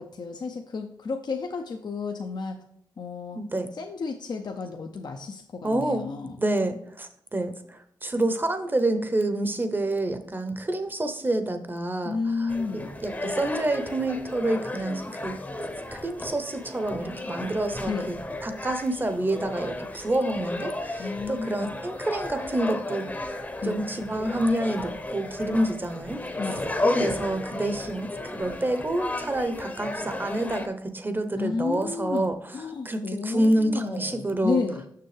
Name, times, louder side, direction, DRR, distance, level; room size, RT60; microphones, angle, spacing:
voice 1, 0.0-2.6 3.0-3.4 3.7-6.4 12.0-12.9 17.9-18.1 21.0-21.8 23.6-23.8 26.4-26.7 31.4-34.9, left 4 dB, 60° left, 3 dB, 0.6 m, -32 dB
voice 2, 3.3-3.7 5.6-6.1 6.4-12.5 13.0-15.3 15.9-26.2 27.0-32.4 32.8-34.6, right 1 dB, 25° right, 9 dB, 0.8 m, -28 dB
sound 1, 12.5-30.7, left 2 dB, 20° left, 0.8 m, -33 dB
6.6 x 6.4 x 3.3 m, 0.73 s
wide cardioid pair, 85°, 8 cm